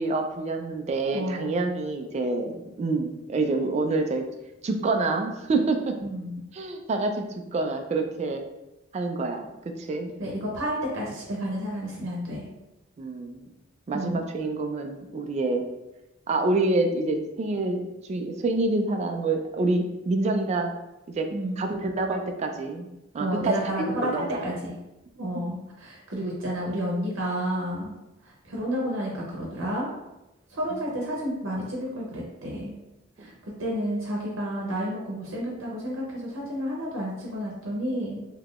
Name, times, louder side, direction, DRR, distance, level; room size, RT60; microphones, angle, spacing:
voice 1, 0.0-4.2 4.6-5.9 6.5-7.2 7.5-8.4 8.9-9.5 9.9-10.1 13.0-13.5 13.9-15.7 16.3-17.8 18.1-20.7 21.1-21.3 21.6-22.9 23.1-23.7 24.0-24.4, right 3 dB, 35° right, 4 dB, 0.3 m, -27 dB
voice 2, 1.1-1.5 6.0-6.4 10.2-12.5 13.9-14.3 21.3-21.6 23.1-24.7 25.2-28.0 28.2-29.9 30.5-32.8 33.2-38.2, equal, 85° right, -3 dB, 0.7 m, -31 dB
3.6 x 2.8 x 2.4 m, 0.95 s
head